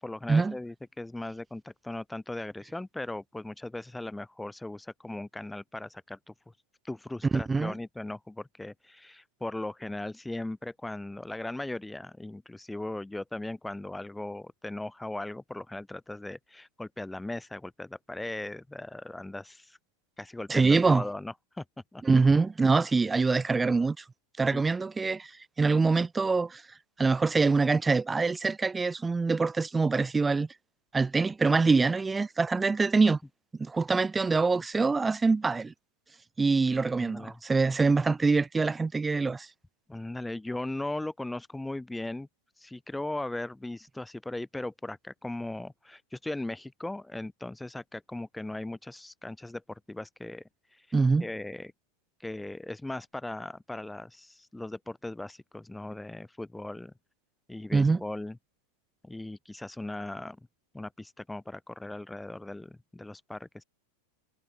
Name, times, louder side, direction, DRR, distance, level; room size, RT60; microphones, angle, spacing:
voice 1, 0.0-6.3 6.8-19.8 20.2-21.6 21.9-22.0 24.5-24.6 36.9-37.4 39.9-42.3 42.6-50.4 50.7-50.9 51.2-51.7 52.2-56.9 57.5-58.4 59.0-60.4 60.7-63.6, left 2 dB, 5° left, 4.3 m, -38 dB
voice 2, 7.3-7.7 20.5-21.0 22.0-24.0 24.4-25.3 25.6-26.6 27.0-30.5 30.9-33.2 33.6-35.7 36.4-39.5 50.9-51.3 57.7-58.0, right 4 dB, 10° right, 4.8 m, -24 dB
figure-of-eight pair, 90°, 0 cm